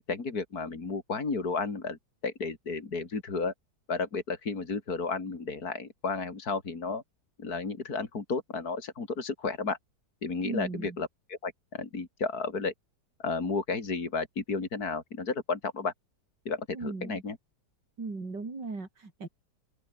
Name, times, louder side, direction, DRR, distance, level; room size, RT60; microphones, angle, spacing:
voice 1, 0.1-3.5 3.9-7.0 7.4-9.8 10.2-12.7 13.2-15.9 16.5-17.4, left 4 dB, 60° left, 3.7 m, -33 dB
voice 2, 10.4-11.0 16.7-17.2 18.0-19.3, right 3 dB, 75° right, 4.9 m, -37 dB
open air
omnidirectional pair, 1.9 m